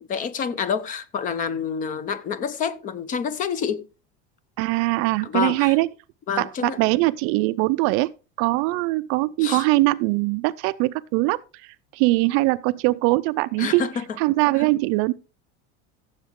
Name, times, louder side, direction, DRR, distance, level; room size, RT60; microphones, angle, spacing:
voice 1, 0.0-3.9 5.2-5.8 6.3-6.9 9.4-9.7 13.6-14.0 14.6-14.7, left 7 dB, 25° left, 0.7 m, -28 dB
voice 2, 4.6-5.9 6.4-8.1 8.4-13.9 14.2-15.1, right 21 dB, 50° right, 0.5 m, -22 dB
15.0 x 7.3 x 3.6 m
cardioid pair, 170°, 29 cm